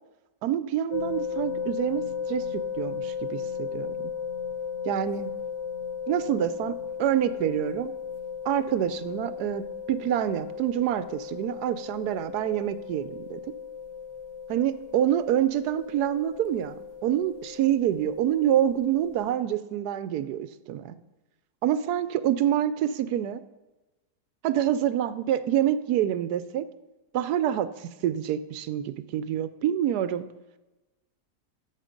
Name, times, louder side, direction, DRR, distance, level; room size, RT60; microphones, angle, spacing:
voice 1, 0.4-2.0 2.3-2.5 2.7-3.9 4.9-5.3 6.1-7.9 8.4-13.4 14.5-20.9 21.6-23.4 24.4-26.6 27.1-30.3, right 11 dB, 80° right, 14 dB, 1.2 m, -27 dB
sound 1, 0.9-19.3, left 6 dB, 55° left, 0.9 m, -36 dB
13.0 x 7.5 x 5.1 m, 1.1 s
omnidirectional pair, 1.7 m